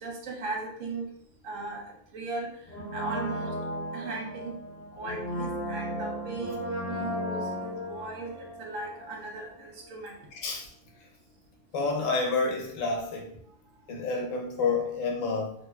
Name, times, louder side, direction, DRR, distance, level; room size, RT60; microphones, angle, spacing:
voice 1, 0.0-1.0 1.4-1.8 2.1-2.5 2.9-3.5 3.9-4.5 5.0-10.1, right 3 dB, 70° right, 0 dB, 1.1 m, -37 dB
Brass instrument, 2.7-9.5 9.8-9.9, equal, 40° left, 0.7 m, -35 dB
voice 2, 11.7-13.3 13.9-15.5, left 4 dB, 75° left, 0 dB, 1.1 m, -29 dB
3.2 x 3.0 x 2.3 m, 0.67 s
omnidirectional pair, 1.4 m